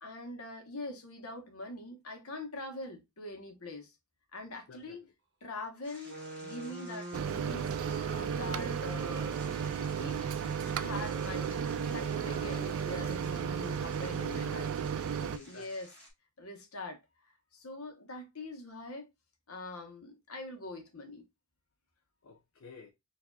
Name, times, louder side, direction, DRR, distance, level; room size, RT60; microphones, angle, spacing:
voice 1, 0.0-3.9 4.3-5.0 5.4-7.7 8.1-9.4 10.0-10.3 10.6-11.6 11.9-14.7 15.4-15.9 16.4-17.0 17.5-19.1 19.5-21.3, left 2 dB, 85° left, 1.1 m, -43 dB
voice 2, 4.7-5.1 14.2-14.7 15.1-15.7 22.2-22.9, left 5 dB, 70° left, 0.5 m, -50 dB
sound 1, 5.8-16.1, equal, 5° left, 1.2 m, -54 dB
sound 2, 6.0-15.3, right 2 dB, 55° right, 0.7 m, -45 dB
Microwave oven, 7.1-15.4, right 7 dB, 75° right, 0.3 m, -34 dB
4.7 x 2.7 x 2.2 m
head